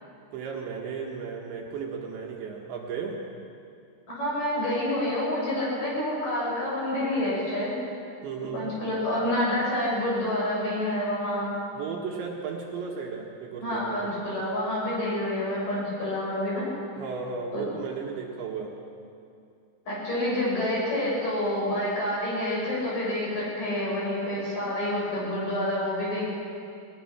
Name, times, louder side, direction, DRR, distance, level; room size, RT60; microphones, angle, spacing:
voice 1, 0.0-3.2 8.2-8.6 11.7-14.0 17.0-18.7, right 5 dB, 70° right, -1 dB, 3.6 m, -35 dB
voice 2, 4.1-7.7 8.5-11.5 13.6-16.6 17.5-17.7 19.9-26.3, left 1 dB, 40° left, -5 dB, 7.8 m, -28 dB
22.0 x 19.5 x 6.0 m, 2.5 s
omnidirectional pair, 5.8 m